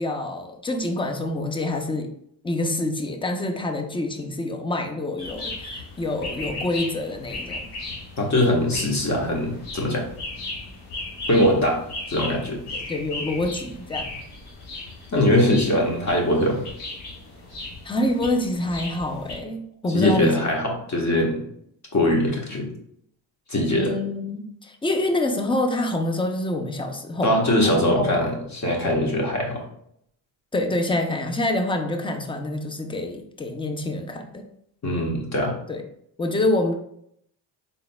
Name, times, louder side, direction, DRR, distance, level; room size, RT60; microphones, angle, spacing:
voice 1, 0.0-2.1 2.4-7.7 12.7-14.1 17.8-20.5 23.8-28.2 30.5-34.4 35.7-35.8 36.2-36.7, left 1 dB, 10° left, 5 dB, 0.5 m, -26 dB
sound 1, 5.2-19.4, left 2 dB, 85° left, 1.5 m, -36 dB
voice 2, 8.2-10.0 11.3-11.8 12.1-12.6 15.1-16.6 19.9-21.4 21.9-22.7 23.5-23.9 27.2-29.6 34.8-35.5, left 1 dB, 35° left, 0 dB, 1.4 m, -21 dB
4.1 x 3.8 x 2.3 m, 0.71 s
supercardioid pair, 75°, 49 cm